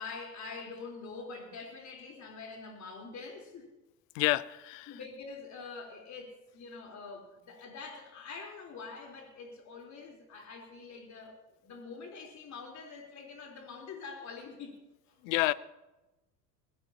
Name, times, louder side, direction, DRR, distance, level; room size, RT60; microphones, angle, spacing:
voice 1, 0.0-3.7 4.9-11.4 11.6-14.8 15.1-15.2, left 4 dB, 35° left, 1 dB, 3.9 m, -45 dB
voice 2, 4.1-5.0 15.2-15.5, left 19 dB, 55° left, 19 dB, 0.7 m, -29 dB
20.5 x 16.5 x 2.9 m, 1.0 s
figure-of-eight pair, 75°, 48 cm